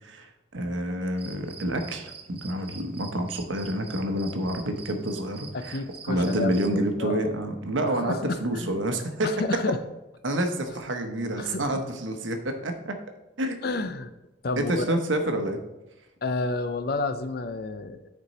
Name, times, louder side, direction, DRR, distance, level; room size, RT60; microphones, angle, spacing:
voice 1, 0.0-5.8 6.1-9.3 10.2-13.0 13.4-13.6 14.6-15.6, right 1 dB, 75° right, 6 dB, 0.9 m, -28 dB
sound 1, 1.2-6.7, right 6 dB, 30° right, 0.6 m, -46 dB
voice 2, 5.5-7.3 8.0-8.8 9.2-9.8 11.4-11.7 13.6-14.1 14.4-15.0 16.2-18.1, left 2 dB, 50° left, 11 dB, 0.5 m, -30 dB
9.6 x 4.4 x 4.1 m, 0.99 s
head